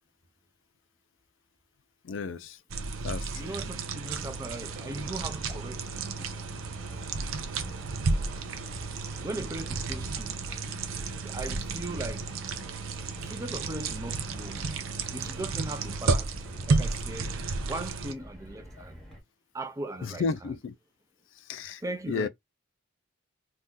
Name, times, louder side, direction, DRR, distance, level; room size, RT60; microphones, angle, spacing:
voice 1, 2.0-2.6 3.0-3.5 20.0-20.7 21.4-21.8 22.1-22.3, left 5 dB, 65° left, 0.4 m, -33 dB
sound 1, 2.7-18.1, right 4 dB, 80° right, 0.5 m, -32 dB
voice 2, 3.4-6.1 9.2-10.3 11.3-12.2 13.3-14.6 15.1-16.2 16.7-17.3 17.7-18.6 19.5-20.2 21.8-22.3, right 2 dB, 15° right, 0.4 m, -38 dB
Car, 4.0-19.2, left 1 dB, ahead, 1.0 m, -46 dB
2.7 x 2.4 x 3.4 m
head